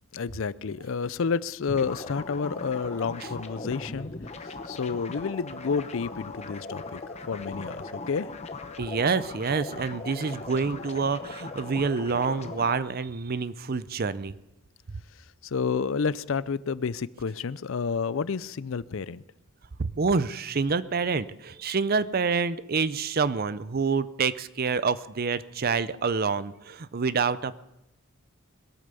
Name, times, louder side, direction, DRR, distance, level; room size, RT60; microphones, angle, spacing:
voice 1, 0.1-4.1 4.4-7.0 7.3-8.3 15.4-19.2, left 5 dB, 60° left, 18 dB, 0.5 m, -30 dB
sound 1, 1.7-12.8, left 3 dB, 30° left, 0.9 m, -39 dB
voice 2, 8.8-14.3 19.8-27.6, right 5 dB, 45° right, 16 dB, 0.5 m, -27 dB
21.5 x 8.8 x 6.8 m, 0.92 s
head